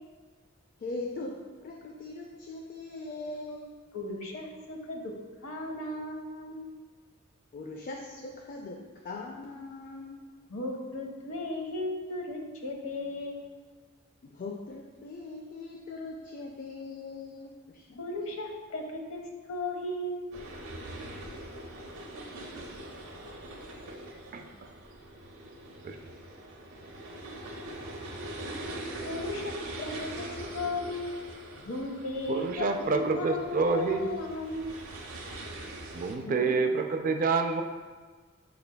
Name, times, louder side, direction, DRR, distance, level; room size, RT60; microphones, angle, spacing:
voice 1, 0.8-3.7 7.5-10.2 14.2-18.1, left 3 dB, 40° left, 1 dB, 0.3 m, -40 dB
voice 2, 3.9-5.1 5.4-6.7 10.5-13.5 18.0-20.4 29.0-31.1 31.6-34.8 36.2-36.6, left 2 dB, 70° left, 1 dB, 0.7 m, -36 dB
sound 1, 20.3-36.1, right 1 dB, 85° right, 0.6 m, -42 dB
voice 3, 32.3-34.1 35.9-37.6, right 4 dB, 40° right, 5 dB, 0.3 m, -27 dB
6.4 x 3.3 x 2.2 m, 1.4 s
head